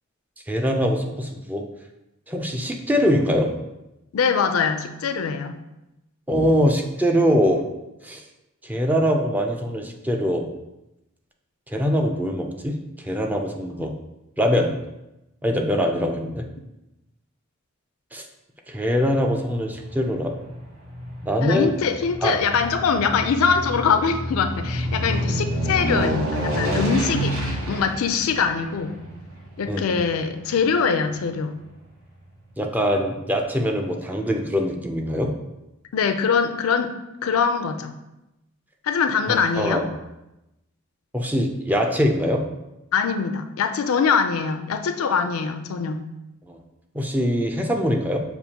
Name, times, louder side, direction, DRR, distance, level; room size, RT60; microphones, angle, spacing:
voice 1, 0.5-1.6 2.3-3.5 6.3-7.6 8.0-8.2 8.6-10.5 11.7-13.9 14.4-14.7 15.4-16.5 18.1-18.2 18.7-20.3 21.2-21.7 22.2-22.3 29.7-29.8 32.6-35.3 39.3-39.9 41.1-42.4 46.5-46.6 46.9-48.2, equal, 10° right, 2 dB, 0.3 m, -23 dB
voice 2, 4.1-5.6 21.4-27.4 27.7-29.0 29.6-31.6 35.9-36.9 37.2-37.9 38.8-39.8 42.9-46.1, left 6 dB, 80° left, 8 dB, 0.4 m, -23 dB
Aircraft, 19.1-31.7 32.1-32.2, equal, 80° right, 1.1 m, -29 dB
6.6 x 2.5 x 2.8 m, 0.93 s
head